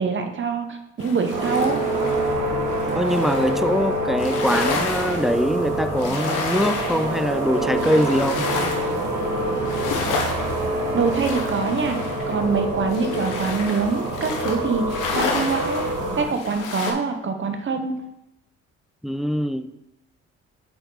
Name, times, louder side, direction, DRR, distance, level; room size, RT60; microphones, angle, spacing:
voice 1, 0.0-1.8 10.9-12.0 12.3-15.8 16.2-17.9, right 5 dB, 40° right, 6 dB, 1.1 m, -24 dB
sound 1, 1.0-3.7 4.2-16.9, left 4 dB, 90° left, 1.2 m, -31 dB
sound 2, 1.3-16.2, right 1 dB, 75° right, 2.1 m, -26 dB
voice 2, 3.0-8.5 19.0-19.7, equal, ahead, 10 dB, 0.3 m, -23 dB
8.0 x 4.4 x 4.1 m, 0.85 s
cardioid pair, 90°, 30 cm